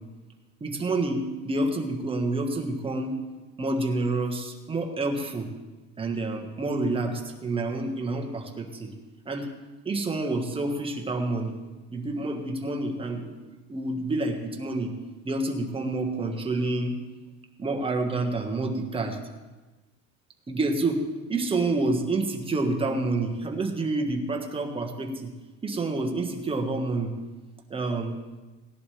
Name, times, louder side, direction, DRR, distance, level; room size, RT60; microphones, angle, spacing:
voice 1, 0.6-3.2 3.6-5.5 6.0-8.9 9.3-9.5 9.8-11.5 11.9-14.9 15.2-16.9 17.6-19.2 20.5-21.0 21.3-25.3 25.6-27.1 27.7-28.2, right 2 dB, 20° right, 3 dB, 1.5 m, -28 dB
18.5 x 11.0 x 3.4 m, 1.2 s
cardioid pair, 140°, 29 cm